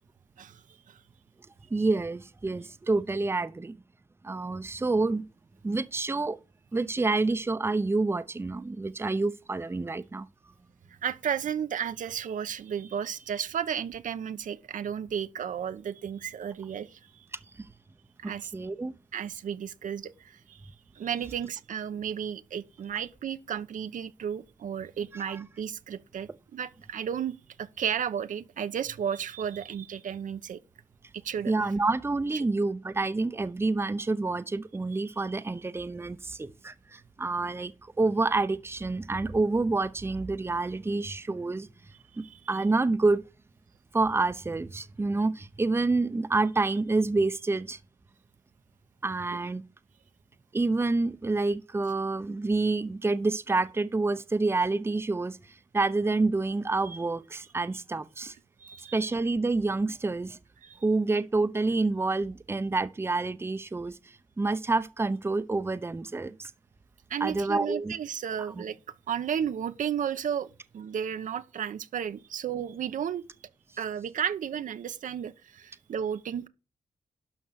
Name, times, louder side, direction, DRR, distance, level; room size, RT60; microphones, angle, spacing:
voice 1, 1.7-3.8 4.2-5.3 5.6-6.4 6.7-10.3 17.6-17.7 18.5-18.9 25.1-25.4 31.5-41.7 42.2-43.2 43.9-47.8 49.0-49.6 50.5-55.4 55.7-58.4 58.9-60.4 60.8-66.5 67.2-67.9 68.5-68.6, right 3 dB, 20° right, 0.7 m, -28 dB
voice 2, 11.0-17.0 18.2-18.5 19.1-20.1 20.5-20.6 21.0-30.6 31.2-31.5 42.2-42.4 58.6-58.9 60.6-60.8 67.1-68.8 69.1-73.2 73.8-76.5, right 8 dB, 75° right, 0.9 m, -33 dB
12.0 x 5.5 x 6.3 m
cardioid pair, 100°, 13 cm